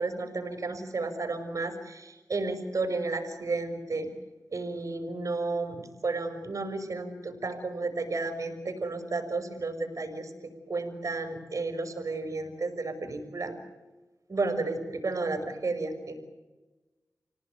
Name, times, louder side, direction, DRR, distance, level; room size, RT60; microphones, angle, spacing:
voice 1, 0.0-4.1 4.5-10.3 10.7-13.5 14.3-16.1, right 3 dB, 55° right, 6 dB, 5.7 m, -32 dB
29.5 x 18.5 x 9.3 m, 1.2 s
wide cardioid pair, 95°, 6 cm